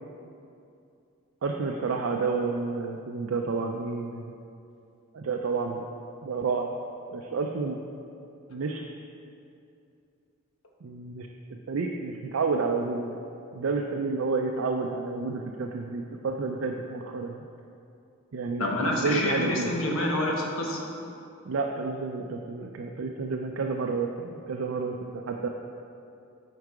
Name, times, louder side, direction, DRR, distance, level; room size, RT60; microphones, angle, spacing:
voice 1, 1.4-4.3 5.1-5.8 6.2-6.7 7.1-7.8 8.5-8.8 10.8-11.3 11.7-13.2 13.5-17.4 18.3-19.7 21.4-25.5, right 4 dB, 60° right, 2 dB, 0.4 m, -30 dB
voice 2, 18.6-20.8, left 1 dB, 70° left, -1 dB, 1.1 m, -27 dB
8.1 x 4.7 x 4.8 m, 2.6 s
head